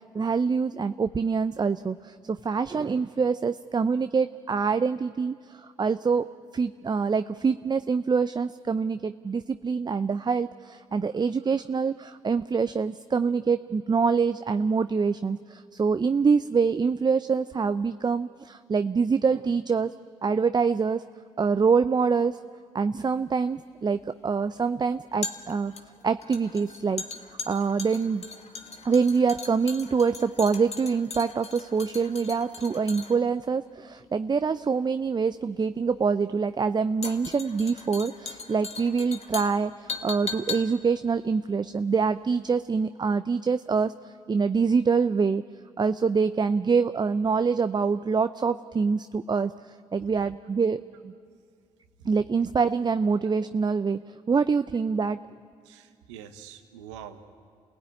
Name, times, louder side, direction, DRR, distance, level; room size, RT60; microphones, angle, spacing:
voice 1, 0.1-19.9 20.2-21.0 21.4-22.4 22.7-25.7 26.0-27.0 27.5-28.2 28.8-45.4 45.8-51.1 52.0-55.2, right 5 dB, 30° right, 12 dB, 0.6 m, -25 dB
sound 1, 23.1-42.3 42.6-42.7, left 4 dB, 45° left, 1.7 m, -40 dB
voice 2, 55.6-57.3, right 9 dB, 85° right, 8 dB, 1.2 m, -45 dB
29.0 x 17.0 x 9.3 m, 2.3 s
hypercardioid pair, 50°, 15 cm